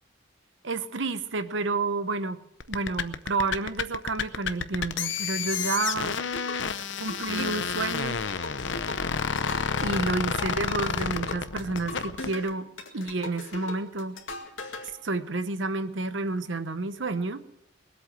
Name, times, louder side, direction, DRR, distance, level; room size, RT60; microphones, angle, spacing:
voice 1, 0.6-2.4 2.7-6.2 7.0-8.2 9.8-12.7 12.9-14.2 15.0-17.4, right 3 dB, 70° right, 11 dB, 0.9 m, -30 dB
sound 1, 2.6-12.3, left 6 dB, 70° left, 0.7 m, -30 dB
sound 2, 6.3-14.9, left 3 dB, 90° left, 2.1 m, -39 dB
20.5 x 8.2 x 7.5 m, 0.82 s
head